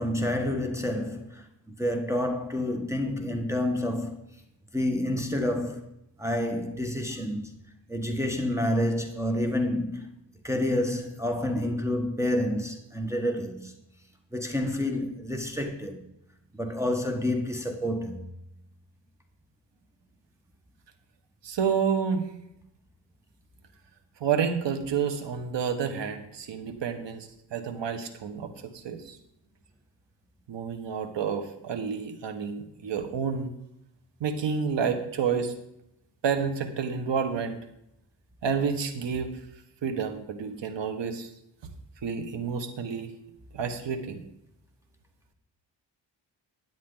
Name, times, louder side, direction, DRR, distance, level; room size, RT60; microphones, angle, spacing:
voice 1, 0.0-1.4 1.8-4.1 4.7-5.8 6.2-7.5 7.9-10.1 10.4-13.7 14.3-16.0 16.5-18.2, left 1 dB, 5° right, 1.4 m, -28 dB
voice 2, 21.4-22.3 24.2-29.2 30.5-33.5 34.2-35.5 36.2-37.6 38.4-39.3 39.8-41.3 42.0-43.1 43.5-44.2, right 6 dB, 80° right, 1.5 m, -29 dB
13.5 x 9.4 x 4.0 m
cardioid pair, 95°, 43 cm